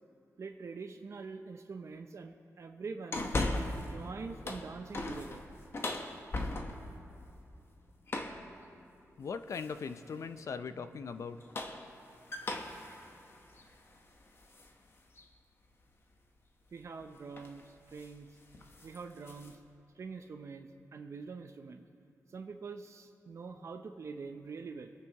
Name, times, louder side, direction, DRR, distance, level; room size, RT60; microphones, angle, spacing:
voice 1, 0.4-3.4 3.8-5.4 16.7-18.4 18.8-19.6 19.9-21.8 22.3-24.9, right 4 dB, 55° right, 6 dB, 0.6 m, -45 dB
sound 1, 3.1-4.0 4.3-7.0 8.1-8.5 9.5-10.0 11.2-14.7 15.2-15.3 16.8-17.0 17.3-17.6 17.9-18.2 18.5-19.5, left 2 dB, 45° left, 1.1 m, -38 dB
voice 2, 9.2-11.4, left 5 dB, 65° left, 11 dB, 0.5 m, -40 dB
24.0 x 8.9 x 3.0 m, 2.8 s
cardioid pair, 85°, 6 cm